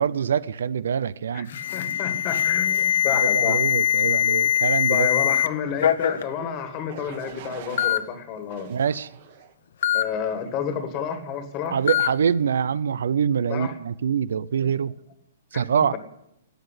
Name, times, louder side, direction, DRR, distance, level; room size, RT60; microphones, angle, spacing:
voice 1, 0.0-1.5 3.1-5.1 8.7-9.1 11.7-15.0 15.5-16.0, right 7 dB, 75° right, 0.6 m, -24 dB
Alarm, 1.5-5.5 5.8-6.2 7.1-7.2 7.8-8.0 9.8-10.0 11.9-12.1, left 10 dB, 55° left, 0.9 m, -22 dB
voice 2, 1.7-3.6 4.9-8.7 9.9-11.8 13.5-13.7 15.5-15.6, left 7 dB, 25° left, 1.7 m, -30 dB
sound 1, 6.0-6.3 6.9-8.0 8.5-9.5 10.1-10.5, right 8 dB, 40° right, 1.8 m, -43 dB
13.0 x 9.2 x 9.8 m
hypercardioid pair, 170°, 0 cm